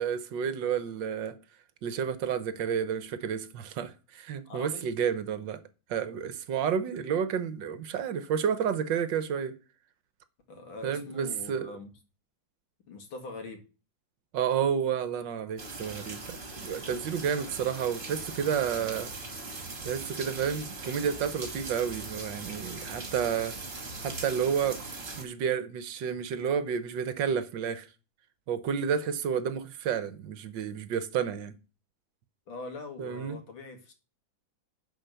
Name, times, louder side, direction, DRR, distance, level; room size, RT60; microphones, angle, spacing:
voice 1, 0.0-1.3 1.8-5.6 5.9-9.6 10.8-11.7 14.3-16.4 16.6-19.1 19.8-23.6 24.0-24.8 25.2-27.9 28.5-31.5 33.0-33.4, right 7 dB, 70° right, 1.5 m, -30 dB
voice 2, 4.5-4.9 10.5-11.9 12.9-13.6 32.5-33.9, left 3 dB, 80° left, 2.7 m, -42 dB
sound 1, 15.6-25.2, right 3 dB, 40° right, 2.6 m, -40 dB
10.5 x 5.1 x 6.7 m
omnidirectional pair, 2.2 m